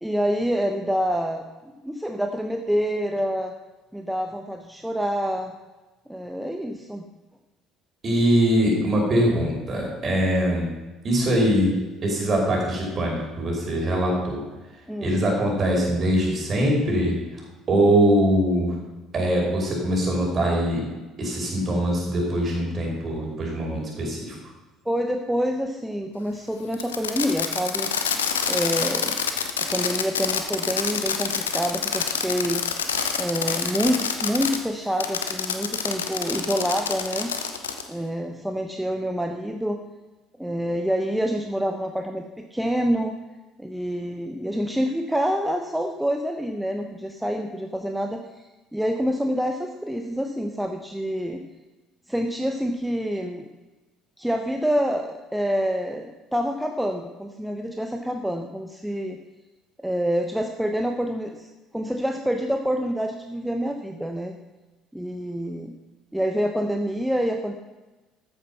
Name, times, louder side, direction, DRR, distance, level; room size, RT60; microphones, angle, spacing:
voice 1, 0.0-1.5 1.8-3.5 3.9-5.5 6.1-7.0 14.9-15.2 24.8-27.9 28.5-29.2 29.6-32.6 33.1-37.3 37.9-39.8 40.4-42.2 42.5-43.1 43.6-48.2 48.7-51.4 52.1-53.4 54.2-59.2 59.8-64.3 64.9-65.7 66.1-67.5, equal, 5° right, 4 dB, 1.0 m, -27 dB
voice 2, 8.0-10.7 11.0-11.8 12.0-14.4 15.0-17.1 17.7-18.7 19.1-20.8 21.2-24.3, equal, 35° right, -1 dB, 5.3 m, -22 dB
Fireworks, 26.7-34.6 35.0-37.9, left 7 dB, 75° left, 1.0 m, -27 dB
14.0 x 8.8 x 5.8 m, 1.2 s
figure-of-eight pair, 55°, 0 cm